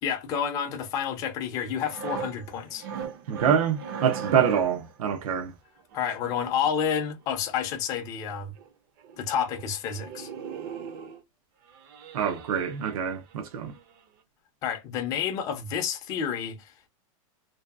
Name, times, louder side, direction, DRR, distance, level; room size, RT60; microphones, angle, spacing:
voice 1, 0.0-2.9 5.9-8.5 9.2-10.3 14.6-16.9, left 8 dB, 20° left, 0.4 m, -30 dB
sound 1, 1.7-4.9 5.9-7.1 8.2-8.3 8.6-8.7 9.0-9.2 9.5-9.7 9.9-11.2 11.7-13.3 13.7-13.9, right 7 dB, 40° right, 0.5 m, -39 dB
voice 2, 3.3-5.5 12.1-13.7, right 8 dB, 80° right, 0.6 m, -25 dB
2.7 x 2.2 x 2.3 m
supercardioid pair, 175°, 18 cm